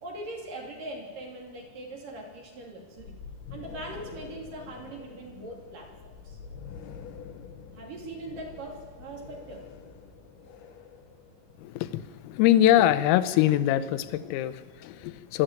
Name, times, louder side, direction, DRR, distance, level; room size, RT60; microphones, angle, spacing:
voice 1, 0.0-3.2 3.5-6.4 7.7-9.7, right 2 dB, 45° right, 1 dB, 4.0 m, -41 dB
sound 1, 3.0-12.7, left 6 dB, 70° left, 3.5 m, -46 dB
voice 2, 11.6-15.4, left 12 dB, 85° left, 14 dB, 3.5 m, -23 dB
25.0 x 12.5 x 9.1 m, 1.5 s
omnidirectional pair, 5.9 m